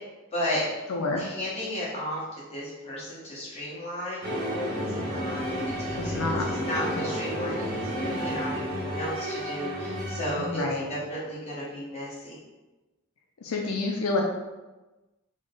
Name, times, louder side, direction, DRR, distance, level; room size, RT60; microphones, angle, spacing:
voice 1, 0.3-0.9 1.1-4.3 4.7-5.4 5.8-6.2 6.5-10.6 10.9-12.4, equal, 30° left, -7 dB, 1.1 m, -34 dB
voice 2, 0.9-1.2 6.0-6.5 6.9-7.0 10.4-10.9 13.4-14.2, left 3 dB, 80° left, 1 dB, 0.4 m, -28 dB
sound 1, 4.2-10.8, equal, 40° right, 0.8 m, -31 dB
3.6 x 2.1 x 3.7 m, 1.1 s
head